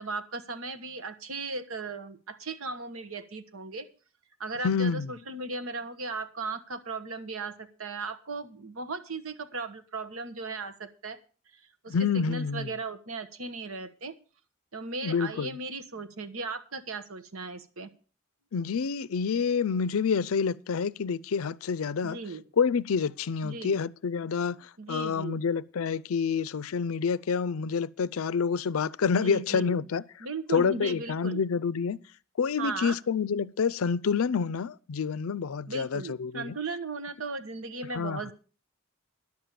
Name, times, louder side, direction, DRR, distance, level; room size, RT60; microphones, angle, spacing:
voice 1, 0.0-3.9 4.4-11.2 11.5-14.1 14.7-17.9 22.0-22.4 23.4-23.8 24.8-25.4 29.1-29.9 30.2-31.4 32.6-33.0 35.7-38.3, right 3 dB, 80° right, 1.2 m, -37 dB
voice 2, 4.6-5.1 11.9-12.7 15.0-15.5 18.5-22.2 22.6-24.6 24.9-30.0 30.5-32.0 32.4-36.6 37.9-38.2, left 6 dB, 80° left, 0.5 m, -28 dB
11.0 x 7.4 x 6.9 m
head